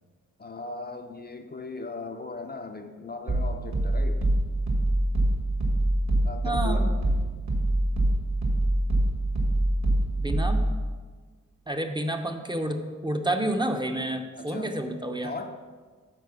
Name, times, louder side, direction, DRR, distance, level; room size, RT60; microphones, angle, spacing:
voice 1, 0.4-4.3 6.2-7.0 14.4-14.8 15.2-15.6, left 3 dB, 30° left, 5 dB, 0.4 m, -38 dB
sound 1, 3.3-10.8, right 1 dB, 65° right, 1.6 m, -25 dB
voice 2, 6.4-6.9 10.2-10.6 11.7-15.3, right 1 dB, 15° right, 5 dB, 0.6 m, -29 dB
9.8 x 4.1 x 6.9 m, 1.5 s
wide cardioid pair, 160°, 30 cm